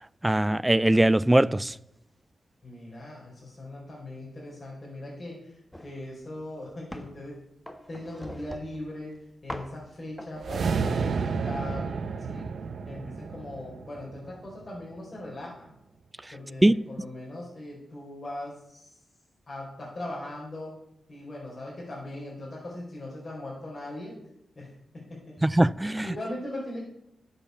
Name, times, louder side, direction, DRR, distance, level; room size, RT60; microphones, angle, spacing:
voice 1, 0.2-1.7 16.6-16.7 25.4-26.1, right 1 dB, 15° right, 0.4 m, -21 dB
voice 2, 2.6-7.3 7.9-9.1 9.4-11.9 12.3-12.5 12.8-15.7 16.3-19.0 19.5-20.7 21.1-24.2 24.5-25.6 26.0-26.9, left 1 dB, 40° left, 4.5 m, -39 dB
sound 1, 5.7-6.0 6.4-7.2 7.7-8.9 9.5-9.8 10.2-11.6, equal, 10° left, 1.4 m, -42 dB
sound 2, 10.4-14.8, right 5 dB, 70° right, 0.8 m, -31 dB
11.0 x 7.1 x 6.9 m
cardioid pair, 70°, 0 cm